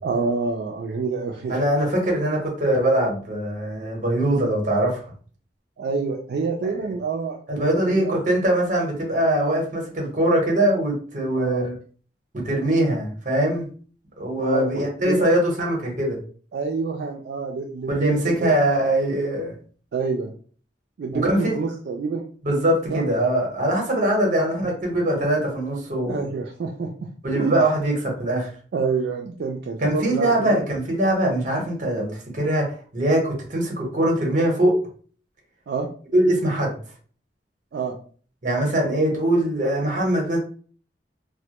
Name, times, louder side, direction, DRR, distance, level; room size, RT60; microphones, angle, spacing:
voice 1, 0.0-1.6 5.8-8.2 11.3-11.7 14.4-15.3 16.5-18.5 19.9-20.3 21.0-22.2 22.9-23.0 26.1-27.1 27.4-27.6 28.7-30.6 35.7-35.9 37.7-38.0, right 4 dB, 65° right, 0 dB, 0.3 m, -27 dB
voice 2, 1.5-5.0 7.5-11.7 12.3-13.7 14.2-16.2 17.9-19.5 21.1-21.5 22.4-26.2 27.2-28.5 29.8-34.8 36.1-36.7 38.4-40.4, right 1 dB, 45° right, 0 dB, 0.9 m, -22 dB
2.1 x 2.1 x 2.8 m, 0.43 s
head